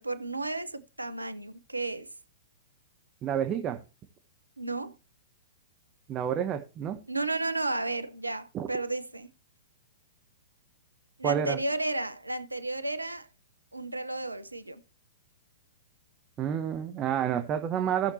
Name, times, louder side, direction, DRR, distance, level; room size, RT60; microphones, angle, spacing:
voice 1, 0.0-2.1 4.6-4.9 7.1-9.3 11.2-13.3 13.7-14.8, right 2 dB, 90° right, 0.7 m, -33 dB
voice 2, 3.2-3.8 6.1-7.0 8.5-8.7 11.2-11.6 16.4-18.1, right 9 dB, 25° right, 1.1 m, -29 dB
17.5 x 6.4 x 2.8 m
figure-of-eight pair, 110°, 0 cm